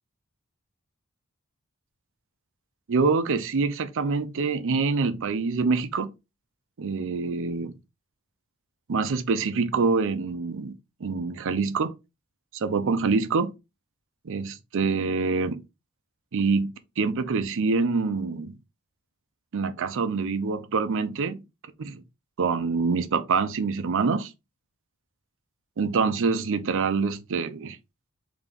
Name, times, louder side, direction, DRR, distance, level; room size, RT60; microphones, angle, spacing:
voice 1, 2.9-6.1 6.8-7.8 8.9-11.9 12.5-13.5 14.2-15.6 16.3-18.6 19.5-21.4 21.8-22.0 22.4-24.3 25.8-27.8, right 4 dB, 60° right, 0.5 m, -26 dB
3.7 x 2.8 x 3.6 m
head